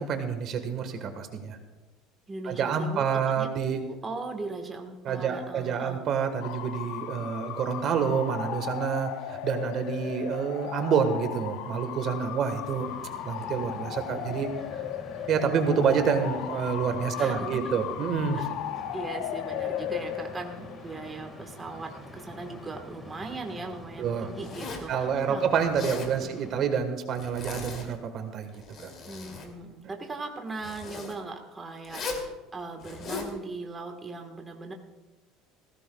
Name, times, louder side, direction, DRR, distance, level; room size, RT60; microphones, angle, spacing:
voice 1, 0.0-1.6 2.4-3.8 5.0-12.9 13.2-14.5 15.3-18.4 24.0-24.3 24.9-28.9, right 6 dB, 45° right, 7 dB, 1.4 m, -28 dB
voice 2, 2.3-6.0 17.1-17.5 18.3-18.5 18.8-25.5 26.2-26.5 29.0-34.7, right 3 dB, 15° right, 3 dB, 1.4 m, -39 dB
Bark / Motor vehicle (road) / Siren, 6.4-22.7, left 11 dB, 75° left, 0.9 m, -37 dB
sound 1, 12.6-26.7, left 1 dB, 10° left, 1.8 m, -46 dB
Zipper (clothing), 24.4-24.9 25.6-26.1 27.1-27.9 28.5-29.5 30.6-31.1 31.8-32.3 32.8-33.3, left 4 dB, 35° left, 2.7 m, -38 dB
19.5 x 16.0 x 2.3 m, 1.1 s
cardioid pair, 150°, 0 cm